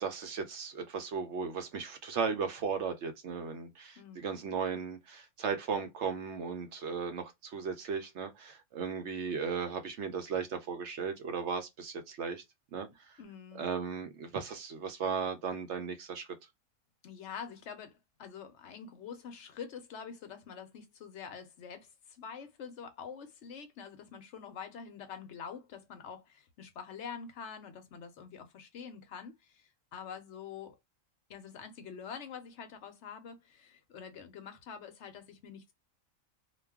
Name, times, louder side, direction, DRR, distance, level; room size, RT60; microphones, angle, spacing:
voice 1, 0.0-12.4 12.7-13.2 13.5-16.3, right 6 dB, 65° right, 0.8 m, -36 dB
voice 2, 4.0-4.3 13.2-13.6 17.0-30.8 31.3-35.7, left 7 dB, 65° left, 0.8 m, -46 dB
2.4 x 2.2 x 3.4 m
omnidirectional pair, 1.4 m